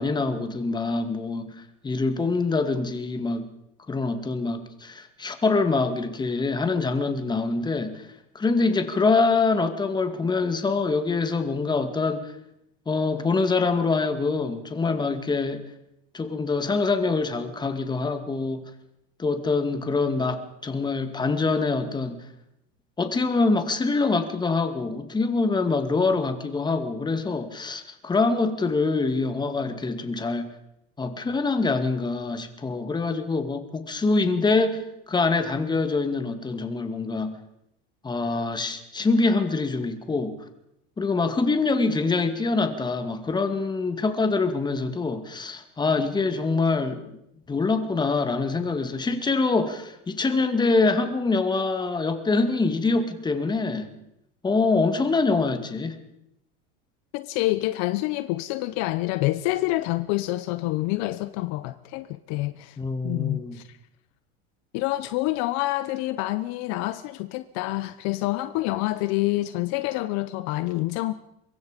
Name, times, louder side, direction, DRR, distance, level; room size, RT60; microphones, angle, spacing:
voice 1, 0.0-1.5 1.8-3.5 3.9-8.1 8.3-12.3 12.9-15.6 16.1-18.6 19.2-22.2 23.0-30.5 31.0-37.4 38.0-40.3 41.0-47.0 47.5-53.9 54.4-56.0 62.8-63.6, left 3 dB, 15° left, 2.2 m, -25 dB
voice 2, 57.1-62.8 63.0-63.8 64.7-71.1, left 18 dB, 55° left, 0.9 m, -27 dB
24.5 x 22.0 x 5.2 m
supercardioid pair, 140°, 32 cm